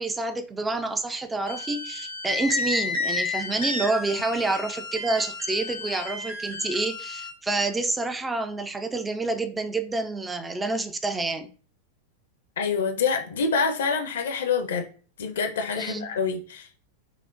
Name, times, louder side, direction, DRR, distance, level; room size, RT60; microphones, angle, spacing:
voice 1, 0.0-11.5 15.8-16.1, right 3 dB, 10° right, 0.4 m, -28 dB
sound 1, 1.5-7.3, left 3 dB, 70° right, 1.9 m, -32 dB
voice 2, 12.6-14.8 15.2-16.8, left 5 dB, 60° left, 0.6 m, -26 dB
5.6 x 2.0 x 2.5 m
figure-of-eight pair, 90°, 0 cm